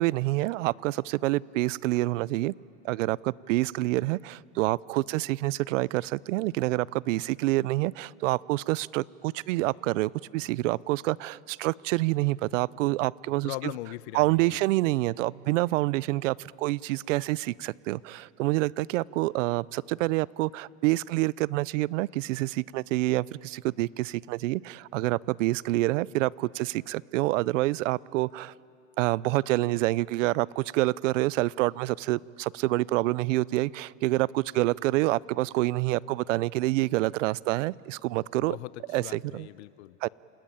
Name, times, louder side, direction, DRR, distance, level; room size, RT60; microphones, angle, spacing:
voice 1, 0.0-2.5 2.8-13.7 14.1-28.5 29.0-38.6 38.9-39.5 40.0-40.1, right 19 dB, 70° right, 23 dB, 0.5 m, -27 dB
voice 2, 13.4-14.6 38.4-40.1, left 18 dB, 60° left, 20 dB, 0.6 m, -40 dB
28.0 x 19.0 x 8.9 m, 2.7 s
supercardioid pair, 165°, 39 cm